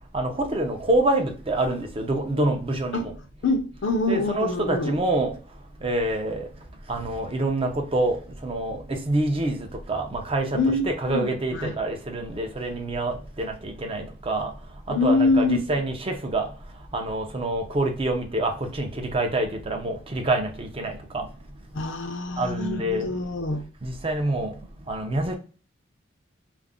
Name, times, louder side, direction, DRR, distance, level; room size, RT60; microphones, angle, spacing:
voice 1, 0.1-3.1 4.1-5.3 5.8-6.5 6.9-8.2 8.4-14.5 14.9-16.5 16.9-21.3 22.4-23.1 23.8-24.5 24.9-25.4, right 2 dB, 30° right, 0.4 m, -26 dB
voice 2, 3.4-4.9 10.5-11.7 14.9-15.6 21.7-23.6, left 3 dB, 65° left, 0.5 m, -25 dB
2.4 x 2.0 x 3.5 m
head